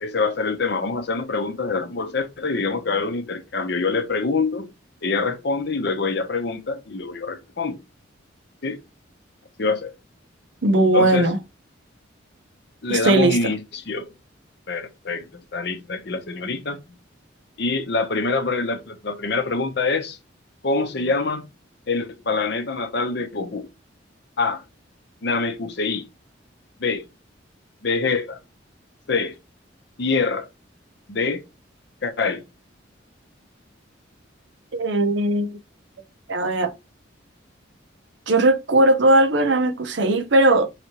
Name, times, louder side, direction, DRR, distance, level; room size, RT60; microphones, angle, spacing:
voice 1, 0.0-4.7 5.0-7.8 8.6-8.8 9.6-9.9 10.9-11.3 12.8-14.1 14.7-16.8 17.6-20.2 20.6-21.5 21.9-23.7 24.4-24.6 25.2-26.0 26.8-27.0 27.8-28.4 29.1-29.3 30.0-30.5 31.1-31.4 32.0-32.4, left 4 dB, 55° left, 0.7 m, -25 dB
voice 2, 10.6-11.4 12.9-13.5 34.7-35.6 36.3-36.7 38.3-40.7, right 1 dB, 65° right, 0.7 m, -18 dB
4.9 x 3.3 x 2.8 m
head